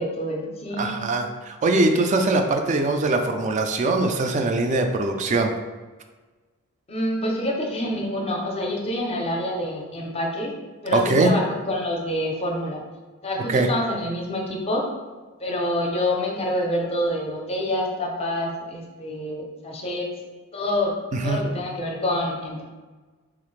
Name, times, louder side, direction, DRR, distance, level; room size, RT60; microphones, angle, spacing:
voice 1, 0.0-1.0 6.9-10.5 10.8-12.8 13.2-14.9 15.4-20.1 20.5-21.0 21.2-22.6, left 1 dB, 25° left, 0 dB, 0.6 m, -27 dB
voice 2, 0.8-5.5 10.9-11.3 13.5-13.7 21.1-21.4, right 2 dB, 35° right, 5 dB, 0.3 m, -22 dB
4.0 x 2.4 x 3.1 m, 1.3 s
head